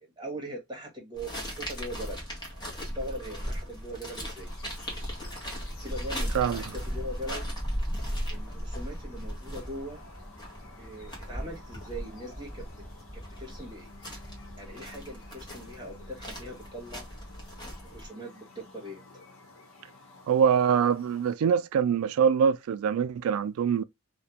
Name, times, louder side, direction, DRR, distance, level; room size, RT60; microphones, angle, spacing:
voice 1, 0.0-2.2 2.5-4.5 5.8-7.5 8.3-10.0 10.8-12.7 13.1-13.9 14.6-17.1 17.8-19.0, right 1 dB, 20° right, 1.0 m, -41 dB
sound 1, 1.2-18.1, equal, 20° left, 0.9 m, -37 dB
sound 2, 4.3-21.4, left 3 dB, 70° left, 0.9 m, -53 dB
voice 2, 20.3-23.8, right 7 dB, 80° right, 0.3 m, -24 dB
2.4 x 2.1 x 2.7 m
head